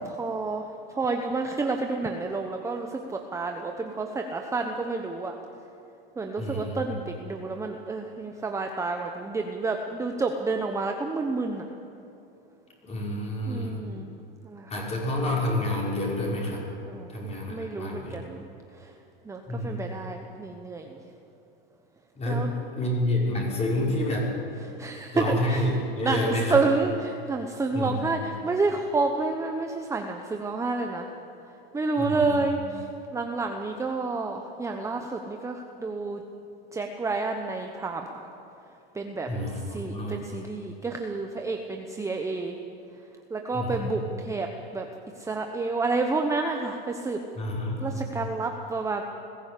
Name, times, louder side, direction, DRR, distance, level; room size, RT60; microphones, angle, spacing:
voice 1, 0.0-0.6 0.9-5.4 6.2-11.6 13.5-14.1 14.4-14.7 16.9-18.4 18.8-18.9 19.3-21.0 22.3-22.5 24.8-25.7 26.0-31.1 31.7-32.9 33.1-36.2 36.7-38.3 38.9-39.3 39.7-42.5 43.3-44.9 45.2-47.2 47.8-49.0, right 3 dB, 10° right, 3 dB, 1.0 m, -29 dB
voice 2, 6.4-6.8 12.8-13.8 14.7-16.6 17.1-18.2 19.5-19.9 22.1-24.3 25.1-26.6 27.7-28.1 32.0-32.4 39.2-40.3 43.5-44.0 47.4-48.0, left 1 dB, 20° left, -3 dB, 6.0 m, -29 dB
20.5 x 15.5 x 8.4 m, 2.8 s
supercardioid pair, 130°, 30 cm